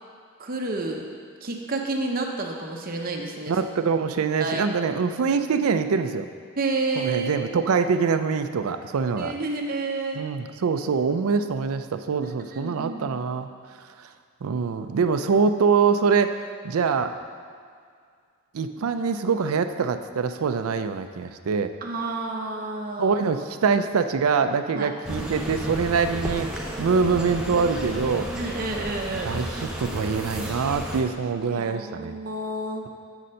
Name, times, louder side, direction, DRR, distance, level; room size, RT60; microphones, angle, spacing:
voice 1, 0.4-1.1 1.4-3.5 4.4-4.6 6.6-7.3 9.2-10.3 12.5-13.3 21.8-23.2 24.7-24.9 28.4-29.4 31.5-32.9, right 3 dB, 40° right, 2 dB, 0.7 m, -30 dB
voice 2, 3.5-6.3 7.0-9.3 10.1-13.5 14.0-14.1 14.4-16.4 16.6-17.1 18.5-21.7 23.0-26.5 26.8-28.3 29.2-32.2, right 5 dB, 80° right, 9 dB, 0.4 m, -24 dB
sound 1, 25.0-31.0, right 1 dB, 5° right, 0.6 m, -32 dB
7.9 x 4.2 x 6.3 m, 2.1 s
head